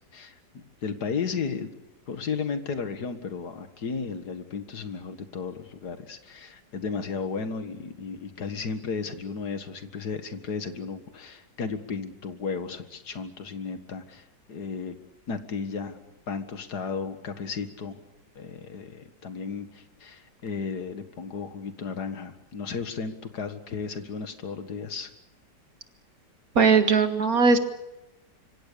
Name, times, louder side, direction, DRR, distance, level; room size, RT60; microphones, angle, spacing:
voice 1, 0.1-1.7 2.1-15.0 15.3-18.0 18.4-25.1, left 5 dB, 60° left, 9 dB, 2.3 m, -34 dB
voice 2, 26.6-27.6, right 5 dB, 55° right, 8 dB, 2.2 m, -19 dB
25.5 x 24.5 x 6.9 m, 0.94 s
omnidirectional pair, 1.9 m